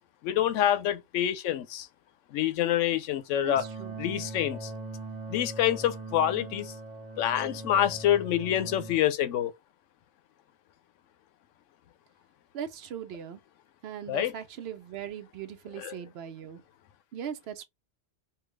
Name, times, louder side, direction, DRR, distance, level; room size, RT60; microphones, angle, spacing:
voice 1, 0.2-1.9 2.3-3.6 4.0-4.7 5.3-6.7 7.2-9.5 14.1-14.3 15.8-16.0, left 11 dB, 90° left, 0.9 m, -27 dB
voice 2, 3.4-3.9 12.5-13.4 13.8-16.6 17.1-17.6, right 9 dB, 65° right, 0.8 m, -39 dB
sound 1, 3.5-9.0, right 3 dB, 10° right, 0.7 m, -40 dB
3.4 x 2.3 x 3.1 m
omnidirectional pair, 1.2 m